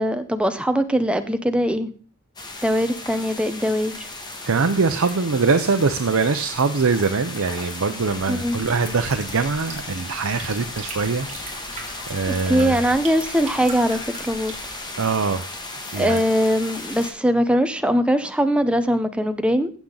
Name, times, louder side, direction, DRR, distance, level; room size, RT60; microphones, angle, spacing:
voice 1, 0.0-1.9 2.6-3.9 8.3-8.6 12.3-14.6 16.0-19.7, equal, 5° right, 9 dB, 0.7 m, -21 dB
sound 1, 2.4-17.1, left 2 dB, 20° left, 1.5 m, -35 dB
voice 2, 4.4-11.3 12.1-12.8 15.0-15.5 15.9-16.2, right 4 dB, 75° right, 7 dB, 0.7 m, -22 dB
sound 2, 8.0-14.8, right 3 dB, 35° right, 2.7 m, -41 dB
15.0 x 7.2 x 3.9 m, 0.41 s
head